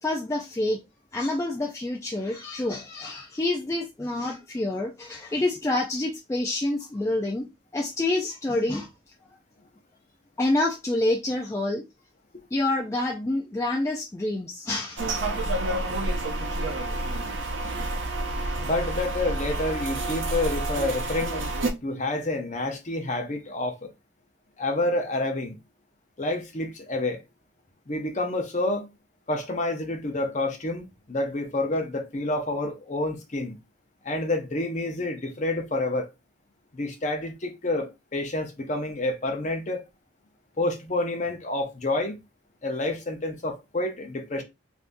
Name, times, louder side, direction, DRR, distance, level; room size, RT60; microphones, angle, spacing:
voice 1, 0.0-0.8 1.1-7.5 7.7-8.9 10.4-11.8 12.5-15.1, left 2 dB, 15° left, 0.3 m, -27 dB
sound 1, 15.0-21.7, right 2 dB, 80° right, 0.6 m, -29 dB
voice 2, 18.6-21.5 21.8-23.9 24.6-25.6 26.2-27.2 27.9-28.9 29.3-33.6 34.0-36.1 36.7-39.8 40.6-42.2 42.6-44.4, left 2 dB, 40° left, 0.7 m, -28 dB
3.5 x 2.6 x 2.6 m
head